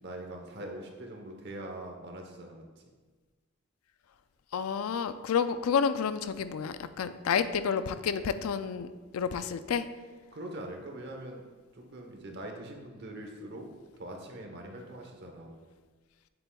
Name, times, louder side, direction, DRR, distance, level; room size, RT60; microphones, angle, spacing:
voice 1, 0.0-2.8 10.3-11.4 11.7-13.7 14.0-15.5, right 1 dB, 50° right, 2 dB, 1.0 m, -42 dB
voice 2, 4.5-9.9, left 6 dB, 80° left, 12 dB, 0.4 m, -30 dB
7.0 x 6.7 x 2.3 m, 1.3 s
head